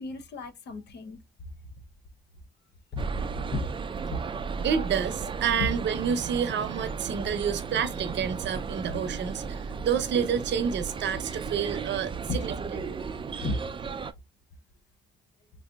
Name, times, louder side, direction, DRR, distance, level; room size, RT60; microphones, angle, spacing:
voice 1, 0.0-1.5 2.9-3.1 3.4-3.7 4.1-4.2 12.3-13.9, left 2 dB, 60° left, 0.8 m, -35 dB
sound 1, 3.0-14.1, right 5 dB, 25° right, 0.4 m, -35 dB
voice 2, 4.6-12.5, right 7 dB, 65° right, 0.7 m, -29 dB
4.8 x 2.6 x 2.2 m
cardioid pair, 90°, 20 cm